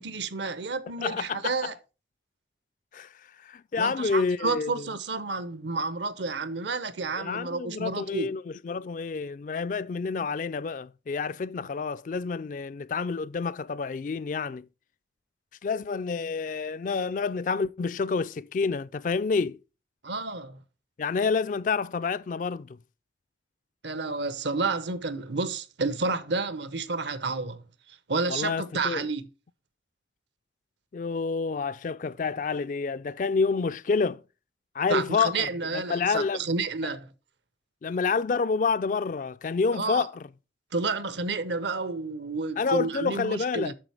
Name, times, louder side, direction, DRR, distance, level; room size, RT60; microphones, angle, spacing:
voice 1, 0.0-1.7 3.8-8.3 20.0-20.6 23.8-27.6 28.1-29.2 34.9-37.1 39.8-40.1 40.7-43.7, right 3 dB, 75° right, 0.9 m, -30 dB
voice 2, 1.0-1.7 2.9-3.1 3.4-4.9 7.2-14.7 15.6-19.6 21.0-22.8 28.3-29.1 30.9-34.2 34.7-36.4 37.8-40.2 42.6-43.7, left 5 dB, 45° left, 0.3 m, -28 dB
8.9 x 6.3 x 3.4 m
head